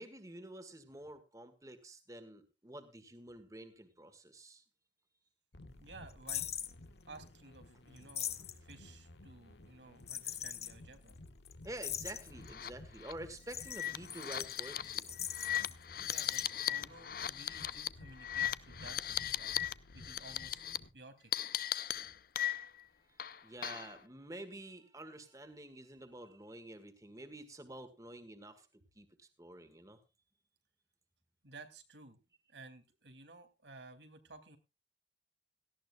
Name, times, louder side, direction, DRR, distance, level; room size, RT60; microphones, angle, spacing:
voice 1, 0.0-4.6 11.6-15.1 23.2-28.7 29.0-30.0, right 1 dB, 20° right, 9 dB, 1.7 m, -49 dB
sound 1, 5.5-20.9, left 1 dB, 75° left, 1.3 m, -56 dB
voice 2, 5.8-6.5 7.1-11.1 16.0-16.4 16.7-19.6 19.9-20.6 20.9-21.3 31.4-32.2 32.5-34.6, right 3 dB, 80° right, 7 dB, 2.4 m, -55 dB
sound 2, 6.3-6.7 8.0-8.7 10.1-10.7 11.1-11.2 11.4-11.5 11.8-12.5 13.4-15.7 16.0-16.4, left 10 dB, 35° left, 1.1 m, -41 dB
sound 3, 12.5-12.7 13.0-13.1 13.7-19.7 20.0-20.8 21.3-22.8 23.2-24.0, left 11 dB, 55° left, 0.6 m, -37 dB
17.5 x 14.5 x 2.3 m, 0.28 s
head